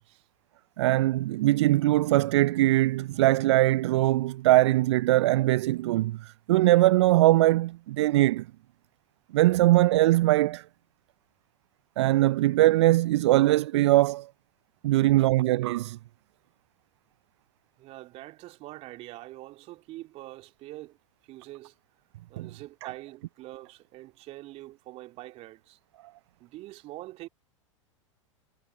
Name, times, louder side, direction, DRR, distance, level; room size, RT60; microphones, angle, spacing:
voice 1, 0.8-8.5 9.3-10.6 12.0-14.3 14.8-16.0 22.4-22.5, right 16 dB, 60° right, 0.4 m, -21 dB
voice 2, 17.8-21.0 21.3-21.7 22.3-25.8 26.4-27.3, right 17 dB, 40° right, 3.2 m, -44 dB
figure-of-eight pair, 95°, 16 cm